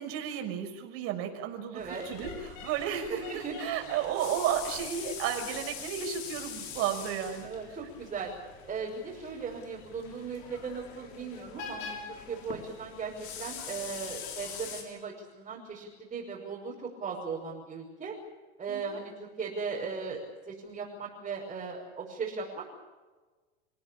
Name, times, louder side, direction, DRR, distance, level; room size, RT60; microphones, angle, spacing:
voice 1, 0.0-7.5 18.7-19.0, right 9 dB, 50° right, 4 dB, 6.1 m, -33 dB
voice 2, 1.7-2.0 3.1-3.7 7.4-8.3 8.7-18.1 18.6-22.7, right 5 dB, 20° right, -3 dB, 5.9 m, -38 dB
sound 1, 1.8-14.8, left 6 dB, 55° left, 6.6 m, -43 dB
29.5 x 17.0 x 8.8 m, 1.3 s
supercardioid pair, 135°, 31 cm